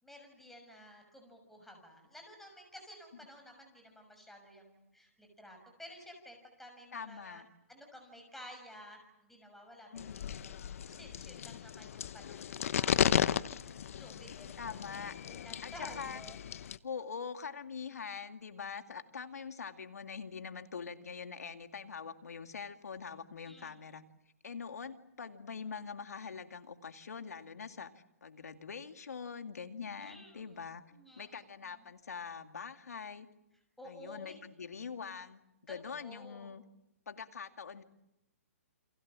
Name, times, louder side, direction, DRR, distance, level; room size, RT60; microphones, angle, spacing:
voice 1, 0.0-7.4 7.7-10.0 10.4-14.8 15.2-16.4 23.5-23.8 30.0-30.6 30.9-31.8 33.8-34.4 35.7-36.5, left 1 dB, 5° left, 3 dB, 6.2 m, -53 dB
voice 2, 6.9-7.5 9.9-10.3 14.6-16.2 16.8-24.0 24.4-27.9 28.2-30.8 31.2-33.3 33.8-36.6 37.1-37.8, left 6 dB, 90° left, 8 dB, 2.3 m, -44 dB
sound 1, 10.0-16.8, left 9 dB, 65° left, 0.9 m, -35 dB
29.5 x 23.5 x 7.5 m, 0.88 s
hypercardioid pair, 145°, 8 cm